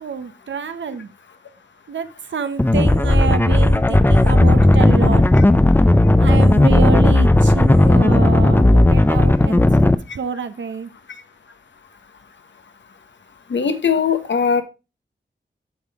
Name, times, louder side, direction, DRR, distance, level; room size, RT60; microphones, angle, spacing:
voice 1, 0.0-1.1 1.9-5.2 6.2-9.9 10.1-10.9, right 5 dB, 75° right, 10 dB, 0.7 m, -27 dB
sound 1, 2.6-9.9, left 1 dB, 10° left, 0.4 m, -13 dB
voice 2, 13.5-14.6, left 6 dB, 75° left, 9 dB, 1.0 m, -19 dB
8.2 x 5.8 x 3.4 m, 0.27 s
wide cardioid pair, 70°, 19 cm